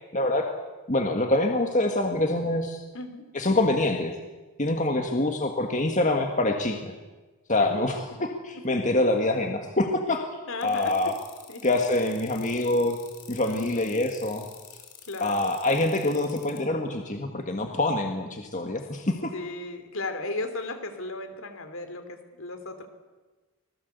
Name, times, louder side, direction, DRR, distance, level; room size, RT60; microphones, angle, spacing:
voice 1, 0.1-0.5 0.9-2.8 3.3-4.1 4.6-6.9 7.5-11.2 11.6-13.0 13.3-14.5 15.2-19.3, left 2 dB, 35° left, 4 dB, 1.8 m, -25 dB
voice 2, 4.9-5.3 7.6-7.9 10.5-10.9 11.5-11.6 13.4-14.0 15.1-15.6 19.3-22.9, left 2 dB, 65° left, 8 dB, 3.2 m, -36 dB
sound 1, 10.6-16.6, left 10 dB, 90° left, 4.9 m, -47 dB
25.5 x 19.5 x 8.2 m, 1.2 s
head